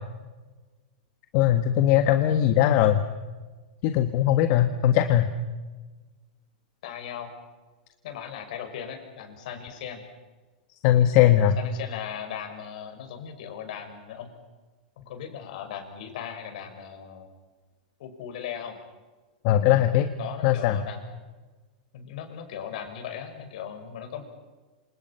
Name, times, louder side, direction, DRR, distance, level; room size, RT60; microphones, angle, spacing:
voice 1, 1.3-3.0 3.8-5.3 10.8-11.6 19.4-20.1 20.4-20.8, left 11 dB, 45° left, 7 dB, 1.5 m, -20 dB
voice 2, 6.8-7.3 8.0-10.0 11.6-14.3 15.0-17.3 18.0-18.8 20.2-21.0 21.9-24.2, left 8 dB, 65° left, 6 dB, 6.2 m, -38 dB
28.0 x 27.5 x 5.8 m, 1.3 s
hypercardioid pair, 140°, 4 cm